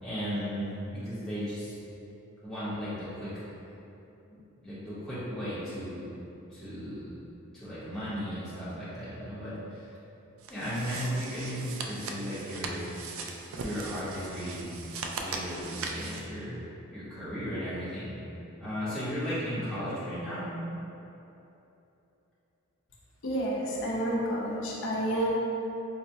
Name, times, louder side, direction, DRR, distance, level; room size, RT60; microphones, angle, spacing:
voice 1, 0.0-1.7 2.4-3.4 4.3-6.1 6.5-7.1 7.5-9.9 10.5-12.9 13.2-14.7 15.2-16.6 16.9-18.2 18.6-20.5, equal, 5° left, -14 dB, 0.8 m, -35 dB
sound 1, 10.4-16.3, right 3 dB, 65° right, 0.3 m, -39 dB
voice 2, 23.2-25.3, right 1 dB, 60° left, -4 dB, 0.6 m, -30 dB
4.5 x 2.2 x 2.6 m, 3.0 s
head